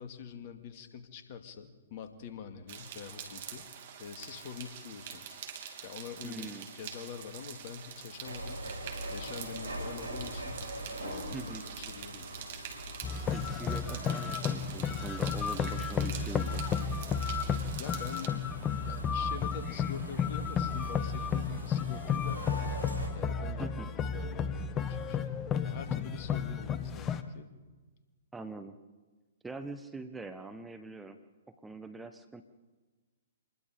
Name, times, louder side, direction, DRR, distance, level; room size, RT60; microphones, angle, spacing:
voice 1, 0.0-3.7 4.0-5.5 5.8-6.5 6.7-8.7 9.1-10.7 11.0-12.2 17.3-17.4 17.7-18.5 18.8-22.8 23.1-25.3 25.6-27.5, left 7 dB, 45° left, 7 dB, 2.3 m, -45 dB
sound 1, 2.7-18.3, right 8 dB, 50° right, 2.9 m, -46 dB
voice 2, 6.2-6.7 11.3-11.7 13.3-16.6 23.6-23.9 28.3-28.7 29.4-31.2 31.6-32.4, right 3 dB, 5° right, 8 dB, 1.0 m, -43 dB
sound 2, 8.2-23.1, right 1 dB, 80° right, 4.6 m, -43 dB
sound 3, 13.0-27.2, left 6 dB, 20° left, 1.2 m, -33 dB
27.0 x 21.0 x 5.2 m, 1.3 s
figure-of-eight pair, 120°, 0 cm